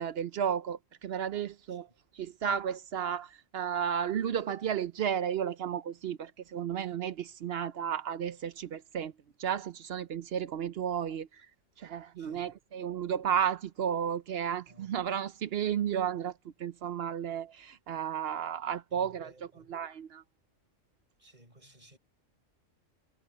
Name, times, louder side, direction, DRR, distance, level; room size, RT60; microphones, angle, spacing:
voice 1, 0.0-1.9 2.2-9.1 9.4-11.3 11.8-16.3 16.6-19.3 19.7-20.2, right 8 dB, 60° right, 0.7 m, -33 dB
voice 2, 12.2-12.5 14.7-14.9 18.9-19.7 21.2-22.0, right 1 dB, 30° right, 6.7 m, -57 dB
omnidirectional pair, 1.4 m